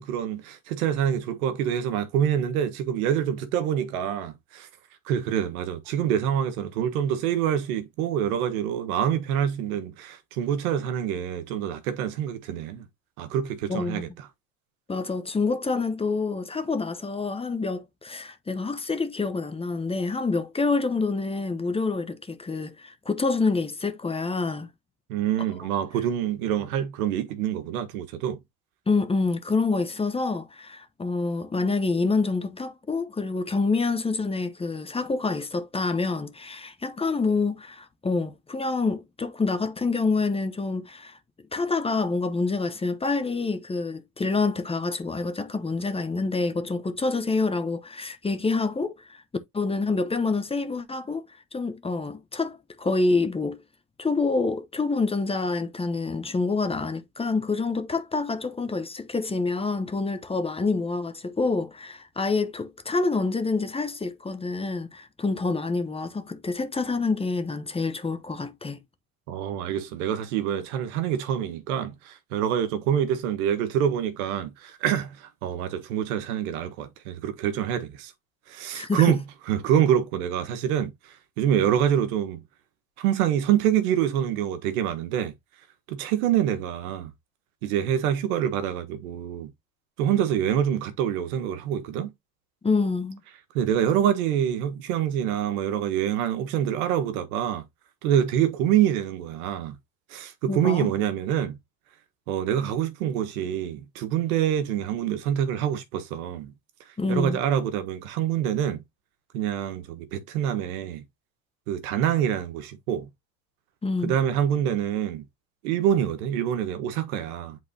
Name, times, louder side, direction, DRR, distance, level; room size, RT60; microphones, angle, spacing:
voice 1, 0.0-4.7 5.0-12.8 13.2-14.3 25.1-28.4 69.3-78.1 78.5-82.4 83.0-85.3 85.9-87.1 87.6-89.5 90.0-92.1 93.5-97.6 98.0-99.8 100.1-101.6 102.3-106.5 107.1-108.8 109.3-111.0 111.7-113.1 114.0-115.2 115.6-117.6, right 10 dB, 85° right, 1.5 m, -26 dB
voice 2, 13.7-14.0 14.9-24.7 28.9-41.2 41.5-49.2 49.5-51.2 51.5-53.6 54.0-68.8 78.7-79.1 92.6-93.2 100.5-100.9 107.0-107.4 113.8-114.1, left 3 dB, 15° left, 1.0 m, -27 dB
7.9 x 4.2 x 2.8 m
supercardioid pair, 115°, 42 cm